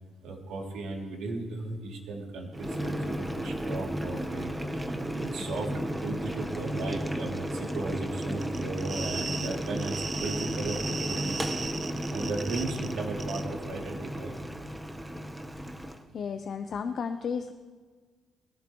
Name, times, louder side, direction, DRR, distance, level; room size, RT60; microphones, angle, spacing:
voice 1, 0.2-11.5 12.1-14.4, right 3 dB, 85° right, -1 dB, 2.7 m, -36 dB
Boiling, 2.5-16.0, equal, 5° right, 0.9 m, -34 dB
sound 1, 8.2-12.9 13.2-13.4, right 4 dB, 30° right, 0.7 m, -37 dB
voice 2, 16.1-17.5, left 6 dB, 50° left, 7 dB, 0.7 m, -33 dB
21.0 x 15.5 x 3.1 m, 1.5 s
cardioid pair, 130°, 0 cm